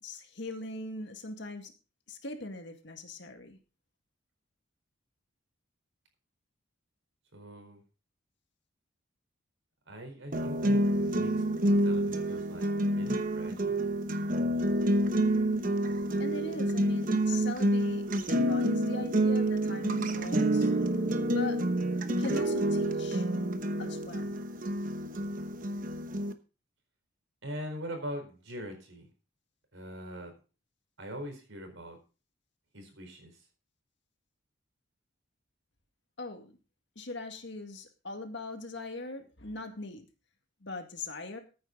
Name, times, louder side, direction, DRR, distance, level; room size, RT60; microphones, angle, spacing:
voice 1, 0.0-1.7 2.1-3.6 16.2-20.7 21.3-21.6 22.2-23.2 23.8-24.4 36.2-36.5 37.0-40.1 40.6-41.4, left 2 dB, 55° left, 5 dB, 2.0 m, -40 dB
voice 2, 7.3-7.8 9.9-11.4 11.8-13.8 27.4-29.1 29.7-30.3 31.0-32.0 32.7-33.4, equal, 70° right, 5 dB, 4.3 m, -42 dB
sound 1, 10.3-26.3, right 1 dB, 40° right, 1.0 m, -28 dB
14.0 x 9.3 x 3.9 m, 0.34 s
head